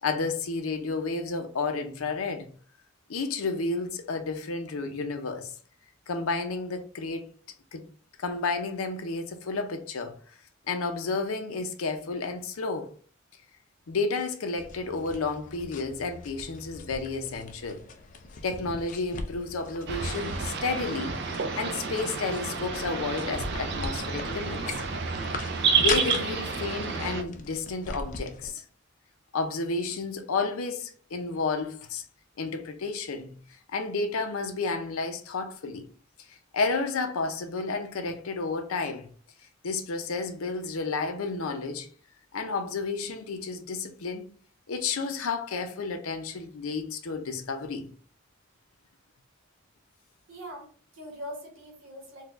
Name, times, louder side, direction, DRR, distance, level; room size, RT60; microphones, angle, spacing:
voice 1, 0.0-2.5 3.1-5.5 6.1-7.3 7.7-7.8 8.2-10.1 10.7-12.9 13.9-17.8 18.4-24.8 25.8-28.6 29.3-32.0 32.4-33.4 33.7-35.9 36.3-39.1 39.6-41.9 42.3-44.3 44.7-47.9, left 4 dB, 90° left, 0.5 m, -31 dB
sound 1, 14.6-28.5, left 3 dB, 40° left, 0.4 m, -40 dB
sound 2, 19.9-27.2, right 5 dB, 55° right, 0.4 m, -30 dB
voice 2, 50.3-52.2, equal, 75° right, 1.0 m, -42 dB
4.0 x 2.2 x 2.4 m
head